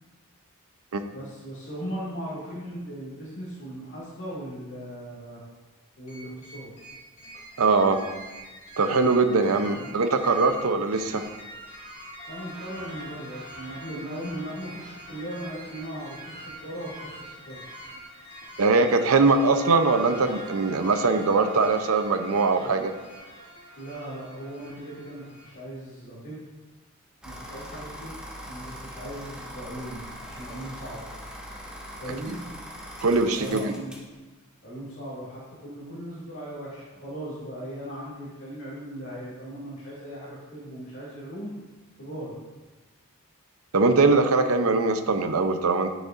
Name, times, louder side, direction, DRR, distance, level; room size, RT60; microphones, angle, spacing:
voice 1, 1.1-5.4 6.0-6.7 9.6-10.0 12.3-17.6 23.8-26.4 27.2-28.2 28.5-31.1 32.0-32.5 33.3-33.9 34.6-41.5 42.0-42.4, right 1 dB, 60° left, -10 dB, 2.3 m, -38 dB
sound 1, 6.1-25.5, equal, 35° left, 2.2 m, -44 dB
voice 2, 7.6-8.0 8.8-11.2 18.6-22.9 33.0-33.7 43.7-45.9, right 3 dB, 70° right, 7 dB, 0.6 m, -21 dB
sound 2, 27.2-34.1, equal, 5° right, 1.0 m, -41 dB
10.0 x 6.3 x 2.5 m, 1.2 s
head